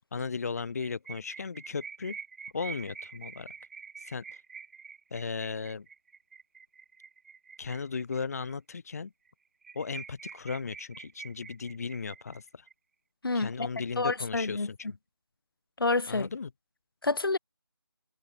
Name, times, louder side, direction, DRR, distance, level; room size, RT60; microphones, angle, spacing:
voice 1, 0.1-2.2 2.5-3.5 4.0-4.4 5.1-5.9 7.6-9.1 9.8-12.7 13.3-14.8 16.1-16.5, left 5 dB, 40° left, 2.0 m, -36 dB
sound 1, 0.6-8.5 8.9-9.0 9.3-9.4 9.6-12.7, right 5 dB, 35° right, 4.6 m, -46 dB
voice 2, 13.2-13.7 14.0-14.7 15.8-16.3 17.0-17.4, left 3 dB, 65° left, 3.1 m, -28 dB
figure-of-eight pair, 165°, 13 cm